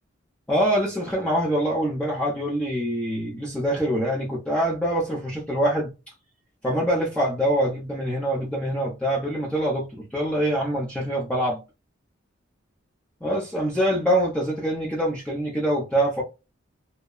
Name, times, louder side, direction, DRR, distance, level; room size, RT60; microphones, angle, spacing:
voice 1, 0.5-5.9 6.6-11.6 13.2-16.2, equal, 5° left, 0.7 m, -24 dB
2.8 x 2.1 x 2.2 m
head